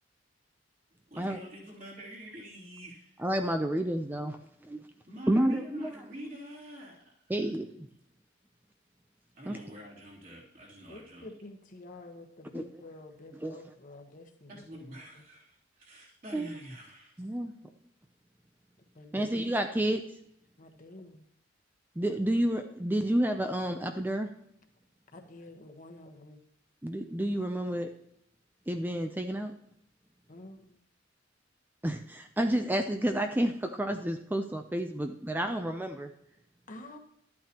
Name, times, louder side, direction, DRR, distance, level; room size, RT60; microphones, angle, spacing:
voice 1, 1.1-3.2 5.1-7.1 7.4-7.5 9.3-11.3 14.5-17.2, equal, 45° right, -4 dB, 3.3 m, -46 dB
voice 2, 3.2-4.4 4.6-4.8 5.3-5.9 7.3-7.9 9.5-9.6 12.5-12.6 13.4-13.6 16.3-16.5 17.2-17.5 19.1-20.0 22.0-24.3 26.8-27.9 28.7-29.5 31.8-36.1, right 1 dB, 10° right, 6 dB, 0.5 m, -30 dB
voice 3, 10.9-15.0 18.9-19.4 20.6-21.3 25.1-26.4 30.3-30.8 36.7-37.0, left 2 dB, 45° left, 4 dB, 1.2 m, -49 dB
12.0 x 8.7 x 3.0 m, 0.74 s
head